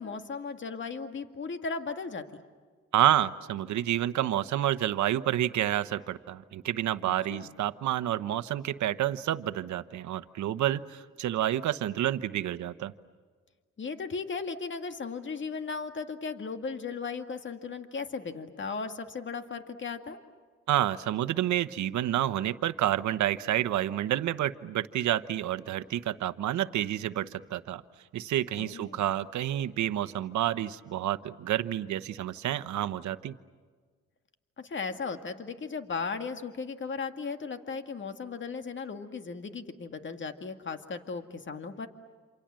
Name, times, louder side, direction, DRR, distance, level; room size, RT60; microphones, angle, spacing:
voice 1, 0.0-2.2 7.3-7.5 13.8-20.2 28.6-29.1 34.6-41.9, left 4 dB, 40° left, 7 dB, 2.1 m, -36 dB
voice 2, 2.9-12.9 20.7-27.8 28.1-33.3, right 12 dB, 70° right, 13 dB, 1.1 m, -29 dB
28.0 x 27.0 x 7.7 m, 1.5 s
cardioid pair, 90°, 30 cm